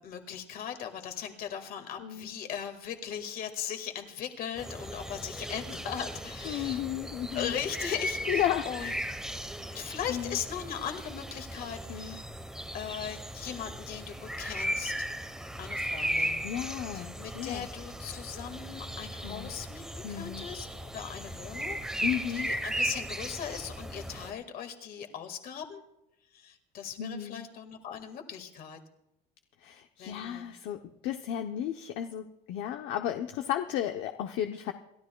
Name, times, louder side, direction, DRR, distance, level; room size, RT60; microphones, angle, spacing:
voice 1, 0.0-6.8 7.3-8.9 9.7-12.3 12.7-15.1 15.6-16.4 16.8-21.8 22.3-25.8 26.3-28.8 30.0-30.4, left 8 dB, 50° left, 6 dB, 1.9 m, -39 dB
voice 2, 2.0-2.3 6.4-7.6 8.3-8.9 9.7-10.4 11.9-12.2 16.4-17.7 19.2-19.5 20.0-20.5 22.0-22.5 27.0-27.5 29.6-34.7, left 11 dB, 65° left, 6 dB, 0.8 m, -34 dB
sound 1, 4.6-24.3, right 1 dB, 5° right, 1.0 m, -37 dB
28.5 x 12.5 x 2.3 m, 0.87 s
cardioid pair, 135°, 20 cm